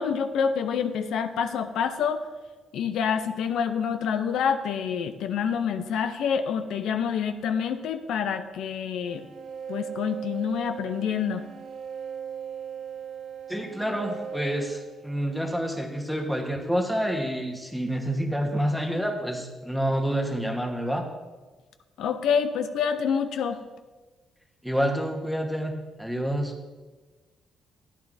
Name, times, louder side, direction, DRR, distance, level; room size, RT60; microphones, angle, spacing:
voice 1, 0.0-2.3 2.7-9.3 9.7-11.4 22.0-23.6, left 7 dB, 80° left, 8 dB, 0.5 m, -27 dB
sound 1, 9.0-15.5, right 8 dB, 65° right, 0.7 m, -39 dB
voice 2, 13.5-21.0 24.6-25.7 26.0-26.5, equal, ahead, 2 dB, 1.2 m, -28 dB
12.0 x 9.1 x 2.6 m, 1.3 s
cardioid pair, 90°, 0 cm